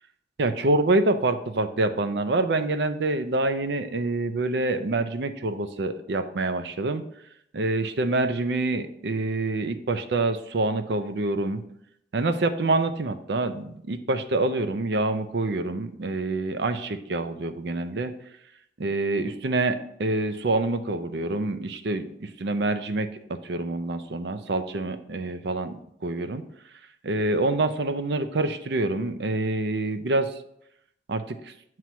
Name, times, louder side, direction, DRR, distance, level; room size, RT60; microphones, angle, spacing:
voice 1, 0.4-7.0 7.5-11.6 12.1-18.1 18.8-25.8 26.0-26.4 27.0-30.3 31.1-31.5, right 2 dB, 60° right, 9 dB, 0.5 m, -26 dB
7.6 x 3.1 x 5.6 m, 0.75 s
head